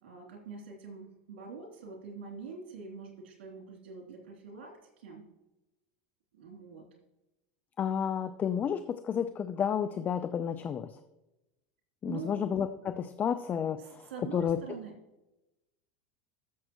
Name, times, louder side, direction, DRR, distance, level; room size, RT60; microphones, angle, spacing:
voice 1, 0.0-5.3 6.3-6.8 12.0-12.4 13.8-15.0, right 5 dB, 90° right, 0 dB, 3.1 m, -45 dB
voice 2, 7.8-10.9 12.0-14.6, left 8 dB, 30° left, 11 dB, 0.5 m, -31 dB
13.0 x 7.3 x 3.0 m, 0.97 s
supercardioid pair, 120°, 6 cm